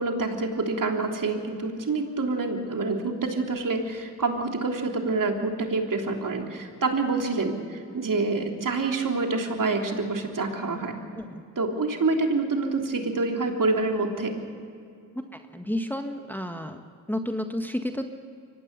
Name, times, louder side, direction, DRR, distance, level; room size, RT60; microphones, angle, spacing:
voice 1, 0.0-11.0 11.5-14.4, right 3 dB, 45° right, 3 dB, 3.4 m, -27 dB
voice 2, 15.5-16.8 17.1-18.1, left 1 dB, 5° left, 6 dB, 1.6 m, -31 dB
24.0 x 19.0 x 6.8 m, 2.3 s
hypercardioid pair, 40°, 43 cm